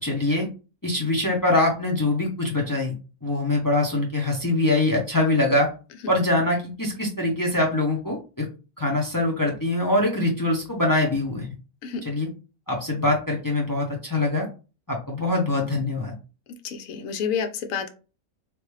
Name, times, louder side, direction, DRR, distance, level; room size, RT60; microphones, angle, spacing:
voice 1, 0.0-0.5 0.8-2.9 3.2-5.7 6.1-8.5 8.8-11.5 12.0-12.3 12.7-14.5 14.9-16.1, left 2 dB, 20° left, -1 dB, 0.6 m, -23 dB
voice 2, 16.6-17.9, left 6 dB, 70° left, 6 dB, 1.0 m, -29 dB
3.3 x 2.6 x 3.1 m, 0.33 s
omnidirectional pair, 1.5 m